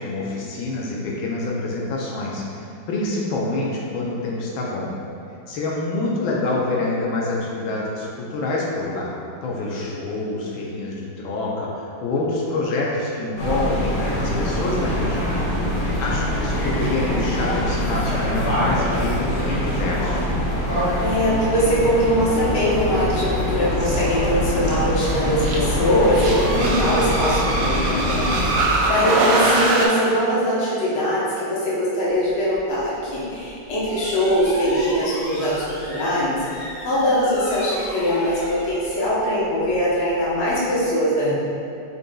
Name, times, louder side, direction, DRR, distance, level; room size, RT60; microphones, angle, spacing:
voice 1, 0.0-4.9 5.5-9.1 9.4-15.4 15.8-20.3, left 2 dB, 80° left, -3 dB, 1.4 m, -26 dB
sound 1, 13.4-28.6, equal, 60° left, 1.5 m, -24 dB
voice 2, 21.0-41.3, equal, 40° left, -8 dB, 1.2 m, -22 dB
sound 2, 23.8-24.0 24.6-24.7 25.4-25.6 26.0-29.9, right 2 dB, 70° right, 1.1 m, -23 dB
sound 3, 32.1-40.7, equal, 20° left, 1.3 m, -37 dB
5.3 x 4.2 x 2.3 m, 2.5 s
omnidirectional pair, 2.1 m